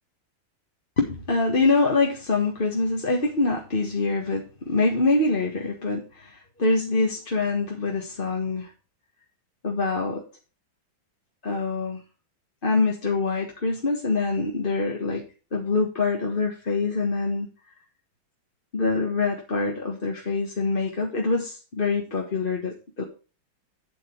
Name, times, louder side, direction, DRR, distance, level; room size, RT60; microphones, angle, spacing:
voice 1, 1.0-8.7 9.6-10.2 11.4-12.0 12.6-15.2 15.5-17.5 18.7-23.0, left 3 dB, 30° left, 0 dB, 1.5 m, -25 dB
9.3 x 8.1 x 4.5 m, 0.34 s
omnidirectional pair, 2.2 m